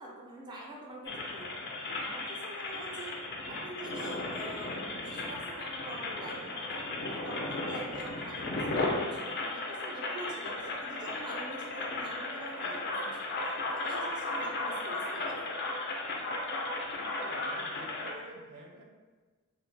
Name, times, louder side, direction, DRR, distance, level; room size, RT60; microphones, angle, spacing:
voice 1, 0.0-1.6 2.0-3.2 3.5-13.3 13.7-15.5, right 2 dB, 20° right, -2 dB, 0.4 m, -45 dB
sound 1, 1.0-18.1, left 2 dB, 50° left, 0.4 m, -35 dB
voice 2, 16.9-18.8, right 1 dB, 85° right, 1 dB, 0.5 m, -50 dB
2.3 x 2.0 x 3.2 m, 1.3 s
head